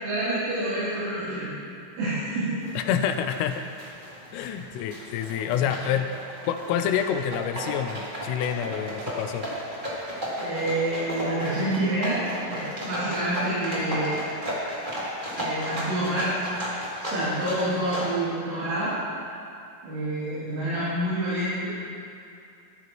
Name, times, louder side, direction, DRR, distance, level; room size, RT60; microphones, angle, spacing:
voice 1, 0.0-1.5 2.0-2.6 4.3-4.5 5.5-5.6 10.3-12.2 12.5-14.2 15.3-16.3 17.0-18.9 19.8-21.7, right 1 dB, 70° right, -15 dB, 5.8 m, -28 dB
sound 1, 2.6-18.1, equal, 25° right, 1.0 m, -34 dB
voice 2, 2.8-3.6 4.3-6.1 6.5-9.5, left 9 dB, 85° left, 7 dB, 3.2 m, -27 dB
16.0 x 13.5 x 3.1 m, 2.5 s
omnidirectional pair, 5.9 m